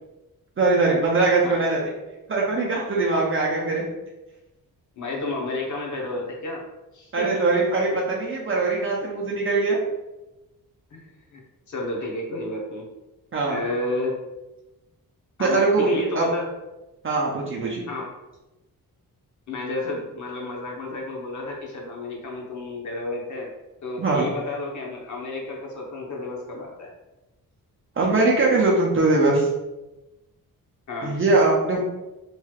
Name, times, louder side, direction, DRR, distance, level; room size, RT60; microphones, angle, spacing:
voice 1, 0.6-1.8 2.3-3.8 7.1-9.8 13.3-13.6 15.4-15.9 16.1-16.2 17.0-17.8 24.0-24.3 28.0-29.5 31.0-31.8, right 3 dB, 35° right, -4 dB, 0.5 m, -21 dB
voice 2, 5.0-6.6 6.9-7.6 10.9-11.4 11.7-12.9 13.4-14.2 15.4-16.5 17.9-18.1 19.5-23.5 23.8-26.9 30.9-31.2 31.8-31.9, left 2 dB, 55° left, -1 dB, 0.8 m, -31 dB
3.1 x 3.1 x 2.3 m, 1.0 s
wide cardioid pair, 135°, 36 cm